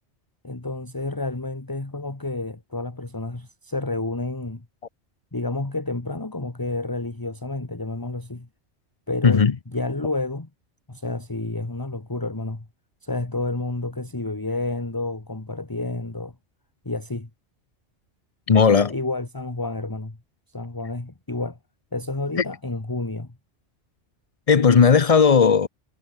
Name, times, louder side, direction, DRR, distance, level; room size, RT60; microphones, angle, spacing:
voice 1, 0.4-4.6 5.3-8.5 9.1-9.4 9.7-10.5 10.9-12.7 13.0-16.3 16.8-17.3 18.9-20.2 20.5-21.6 21.9-23.3, left 2 dB, 20° left, 1.6 m, -30 dB
voice 2, 9.2-9.5 18.5-18.9 24.5-25.7, left 6 dB, 35° left, 0.7 m, -16 dB
omnidirectional pair, 1.2 m